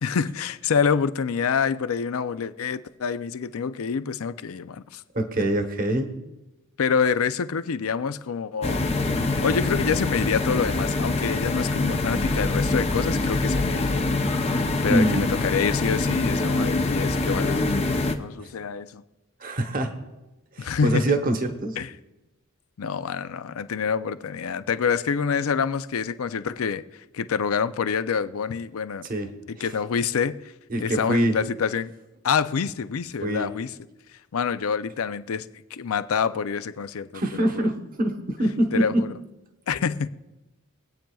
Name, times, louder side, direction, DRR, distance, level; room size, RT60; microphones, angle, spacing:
voice 1, 0.0-5.0 5.4-5.5 6.8-8.8 9.4-14.0 14.8-17.6 18.2-19.0 20.6-21.2 21.8-21.9 22.8-29.1 29.5-30.4 30.8-31.9 32.2-33.7 34.3-37.7 38.7-39.1 39.7-40.1, left 6 dB, 80° left, 0.5 m, -26 dB
voice 2, 5.1-6.1 14.9-15.3 18.4-18.5 19.4-20.0 20.5-21.8 29.1-29.7 30.7-31.4 33.2-33.5 37.1-39.1, right 1 dB, 40° right, 1.0 m, -25 dB
sound 1, 8.6-18.1, left 2 dB, 30° left, 0.6 m, -24 dB
24.5 x 8.8 x 2.3 m
head